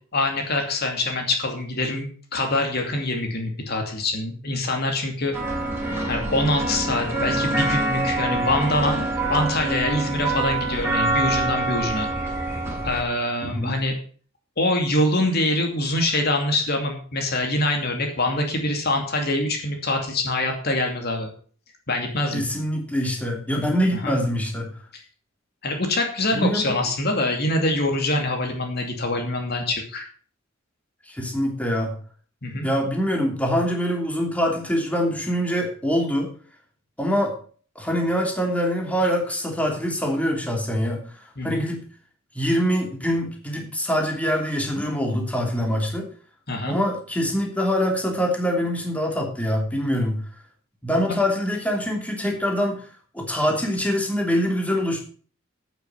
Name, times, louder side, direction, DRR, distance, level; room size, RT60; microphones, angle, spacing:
voice 1, 0.1-5.3 6.0-9.0 9.3-12.1 12.8-14.0 14.6-21.3 21.9-22.4 23.9-24.2 25.6-30.1 32.4-32.7 41.4-41.6 46.5-46.8 51.1-51.2, left 2 dB, 50° left, 3 dB, 2.6 m, -24 dB
sound 1, 5.3-13.0, right 2 dB, 10° right, 5.3 m, -25 dB
voice 2, 22.3-24.7 26.3-26.7 31.1-31.9 32.6-36.3 37.0-37.3 37.7-41.9 42.3-46.1 46.6-50.2 50.8-52.9 53.1-55.0, equal, 5° left, 0 dB, 3.0 m, -24 dB
9.2 x 9.2 x 7.0 m, 0.43 s
head